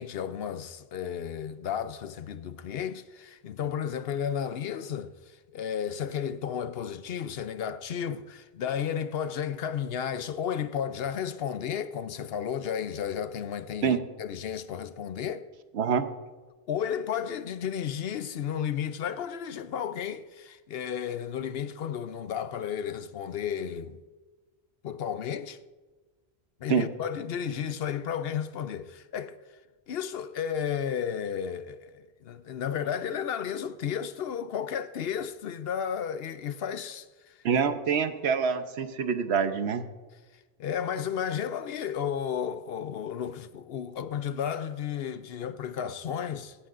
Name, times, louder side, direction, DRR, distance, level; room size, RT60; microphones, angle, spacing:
voice 1, 0.0-15.5 16.7-24.0 24.8-25.6 26.6-29.4 29.9-37.4 40.6-46.6, left 8 dB, 70° left, 0.9 m, -33 dB
voice 2, 15.7-16.1 26.7-26.9 37.4-39.8, right 6 dB, 80° right, 1.1 m, -26 dB
17.0 x 13.5 x 2.5 m
omnidirectional pair, 1.1 m